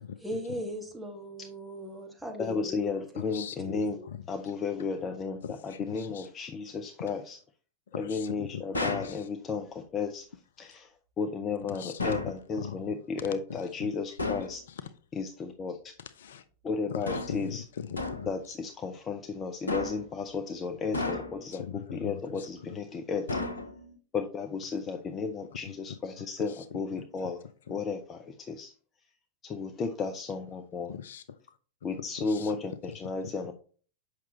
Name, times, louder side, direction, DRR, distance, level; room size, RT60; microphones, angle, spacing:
voice 1, 0.2-3.3 3.6-4.1, equal, 5° right, 1.8 m, -39 dB
voice 2, 2.4-4.0 4.3-7.4 8.0-10.3 10.6-14.6 15.1-15.9 16.6-17.6 18.3-23.4 24.1-27.4 27.7-28.7 29.4-30.9 31.8-33.5, left 5 dB, 25° left, 0.7 m, -34 dB
voice 3, 3.2-4.2 5.4-6.3 7.9-9.3 11.7-12.8 13.8-13.9 14.7-14.8 16.2-16.4 16.9-18.5 21.5-22.5 26.5-26.8 30.9-31.6 32.2-32.6, left 8 dB, 60° left, 0.5 m, -41 dB
sound 1, 8.7-9.2 12.0-12.4 14.2-14.6 17.0-17.5 18.0-18.4 19.7-20.1 20.9-21.5 23.3-23.9, left 2 dB, 75° left, 0.9 m, -33 dB
7.4 x 5.8 x 3.0 m
figure-of-eight pair, 90°, 0 cm